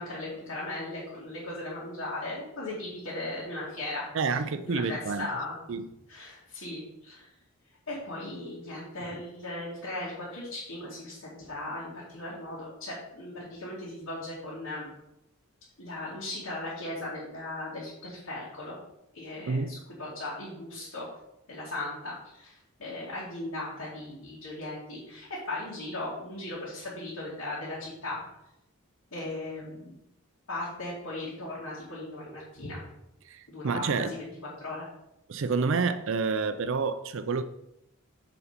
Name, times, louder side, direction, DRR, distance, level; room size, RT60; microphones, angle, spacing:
voice 1, 0.0-4.4 4.6-5.6 6.1-7.3 7.9-14.9 15.8-18.7 19.1-21.1 21.5-28.2 29.1-29.9 30.5-32.8 33.5-34.3 34.6-34.9, left 2 dB, 70° left, 2.4 m, -37 dB
voice 2, 4.1-5.3 5.7-5.9 19.5-19.7 33.3-34.1 35.3-37.4, right 4 dB, 60° right, 0.4 m, -29 dB
7.1 x 5.2 x 5.1 m
head